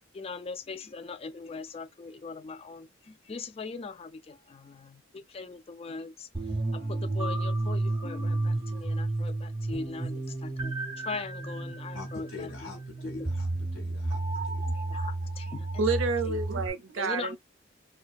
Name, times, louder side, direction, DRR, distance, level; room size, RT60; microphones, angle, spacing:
voice 1, 0.1-6.3 6.7-10.7 11.0-12.5 13.0-13.3 14.4-14.5 14.7-15.7 16.2-16.4 17.0-17.4, left 4 dB, 30° left, 0.3 m, -40 dB
sound 1, 6.3-16.7, right 2 dB, 25° right, 0.7 m, -32 dB
voice 2, 11.9-14.7, left 4 dB, 90° left, 0.8 m, -45 dB
voice 3, 15.8-17.4, right 4 dB, 90° right, 0.5 m, -29 dB
2.6 x 2.2 x 2.3 m
head